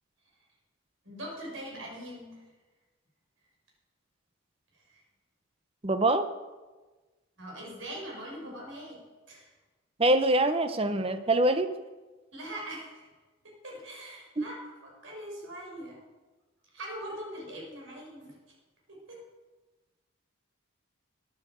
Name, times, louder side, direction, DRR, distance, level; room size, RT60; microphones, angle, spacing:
voice 1, 1.0-2.4 4.9-5.0 7.4-9.0 9.3-9.5 12.3-13.0 13.4-16.0 16.7-18.3 18.9-19.2, right 1 dB, 65° right, -2 dB, 6.0 m, -42 dB
voice 2, 5.8-6.3 10.0-11.7 14.4-14.5, right 1 dB, 25° right, 9 dB, 0.9 m, -24 dB
14.0 x 9.6 x 8.0 m, 1.2 s
head